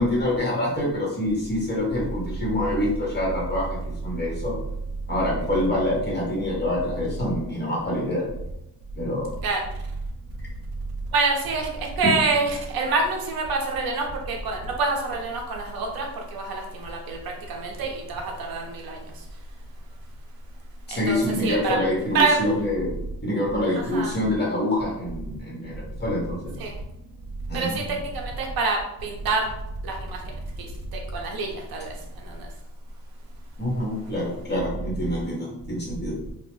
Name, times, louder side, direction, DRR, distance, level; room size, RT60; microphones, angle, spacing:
voice 1, 0.0-4.5 5.1-8.2 9.0-9.3 20.9-26.5 27.5-27.8 33.6-36.1, left 1 dB, 30° left, -4 dB, 1.3 m, -26 dB
voice 2, 11.1-11.7 12.0-17.2 17.5-19.0 20.9-21.8 22.1-22.4 23.7-24.1 26.6-26.7 27.5-28.1 28.4-29.5 29.8-30.2 30.6-30.7 30.9-31.9 32.3-32.4, right 3 dB, 80° right, 1 dB, 0.8 m, -26 dB
2.9 x 2.1 x 3.1 m, 0.84 s
cardioid pair, 120°, 36 cm